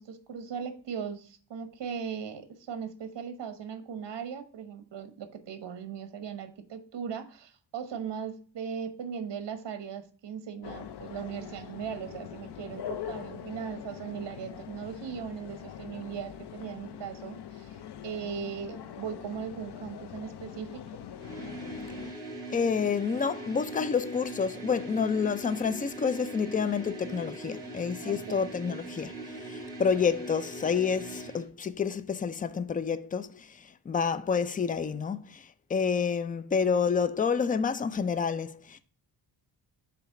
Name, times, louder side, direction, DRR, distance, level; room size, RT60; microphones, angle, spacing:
voice 1, 0.0-17.8 18.0-20.8 28.0-28.5, right 7 dB, 65° right, 1.1 m, -38 dB
sound 1, 10.6-22.1, left 9 dB, 65° left, 0.7 m, -43 dB
sound 2, 21.1-31.5, right 1 dB, 10° right, 2.3 m, -41 dB
voice 2, 22.5-38.8, left 6 dB, 20° left, 0.4 m, -29 dB
7.2 x 2.9 x 5.8 m
wide cardioid pair, 135°, 44 cm